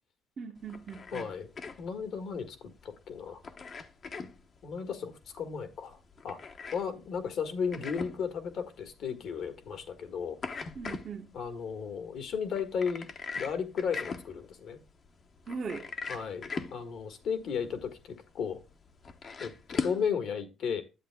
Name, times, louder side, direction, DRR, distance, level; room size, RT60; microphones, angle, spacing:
voice 1, 0.4-1.3 10.7-11.3 15.5-15.9, right 5 dB, 50° right, 1.1 m, -39 dB
sound 1, 0.6-20.1, left 5 dB, 50° left, 0.9 m, -42 dB
voice 2, 1.1-1.5 1.8-3.4 4.6-6.0 6.2-6.4 6.7-10.4 11.3-13.1 13.3-14.8 16.1-18.6 19.4-20.8, left 6 dB, 70° left, 1.5 m, -34 dB
10.0 x 7.9 x 2.2 m
supercardioid pair, 75°, 0 cm